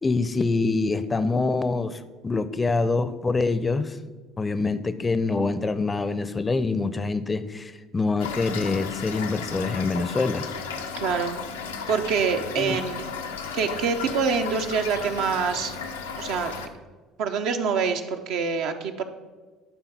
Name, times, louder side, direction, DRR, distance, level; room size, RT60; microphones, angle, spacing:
voice 1, 0.0-4.0 4.4-10.5 12.6-12.8, left 3 dB, 25° left, 13 dB, 0.6 m, -25 dB
Toilet flush / Fill (with liquid), 8.2-16.7, left 6 dB, 85° left, 0.6 m, -34 dB
voice 2, 11.0-11.3 11.9-13.1 13.5-15.7 16.2-16.5 17.2-19.0, right 5 dB, 65° right, 5 dB, 0.7 m, -25 dB
11.5 x 3.9 x 5.8 m, 1.3 s
hypercardioid pair, 60°, 0 cm